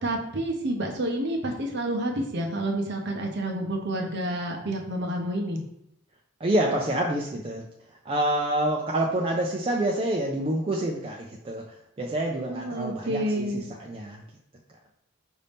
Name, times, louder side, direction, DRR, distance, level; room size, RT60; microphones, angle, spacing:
voice 1, 0.0-5.6 12.5-13.6, right 1 dB, 50° right, 1 dB, 0.7 m, -29 dB
voice 2, 6.4-7.7 8.1-14.2, right 1 dB, 25° right, -1 dB, 0.3 m, -27 dB
5.2 x 2.7 x 3.4 m, 0.78 s
head